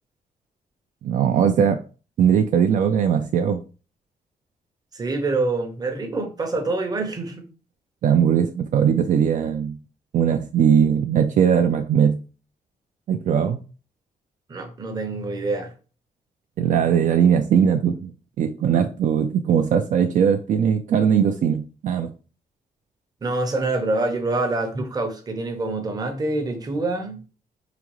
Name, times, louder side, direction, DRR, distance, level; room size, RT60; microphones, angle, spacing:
voice 1, 1.0-1.8 2.2-3.6 8.0-9.8 10.1-12.2 13.1-13.6 16.6-22.1, right 8 dB, 60° right, 0.4 m, -20 dB
voice 2, 4.9-7.5 14.5-15.7 23.2-27.2, right 2 dB, 25° right, 0.7 m, -26 dB
4.9 x 2.3 x 3.0 m
wide cardioid pair, 170°, 15 cm